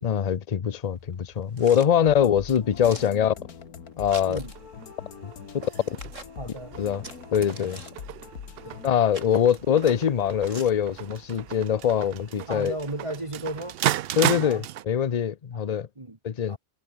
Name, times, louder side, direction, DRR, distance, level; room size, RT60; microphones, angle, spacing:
voice 1, 0.0-3.3 4.0-4.4 5.2-5.3 6.8-7.0 7.3-7.8 8.8-12.8 14.2-15.9 16.2-16.6, left 8 dB, 40° left, 0.6 m, -23 dB
sound 1, 0.8-13.8, right 2 dB, 55° right, 6.4 m, -48 dB
sound 2, 2.1-8.9, left 7 dB, 85° left, 2.0 m, -43 dB
sound 3, 4.4-14.8, right 12 dB, 75° right, 0.5 m, -35 dB
voice 2, 6.4-6.8 8.6-8.8 12.5-13.8 14.4-14.6 15.5-15.6 16.0-16.2 16.5-16.6, right 1 dB, 20° right, 1.6 m, -35 dB
omnidirectional pair, 1.5 m